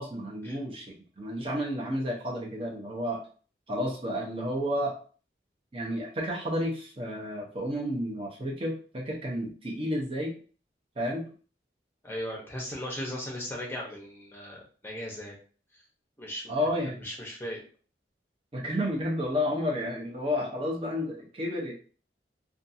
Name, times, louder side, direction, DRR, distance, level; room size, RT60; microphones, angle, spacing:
voice 1, 0.0-3.2 3.7-4.9 5.7-10.3 11.0-11.3 16.5-17.0 18.5-21.7, equal, 30° right, -1 dB, 0.7 m, -31 dB
voice 2, 12.0-15.4 15.7-15.8 16.2-16.5 16.8-17.6, equal, 15° left, -2 dB, 0.7 m, -37 dB
2.6 x 2.3 x 2.6 m, 0.41 s
head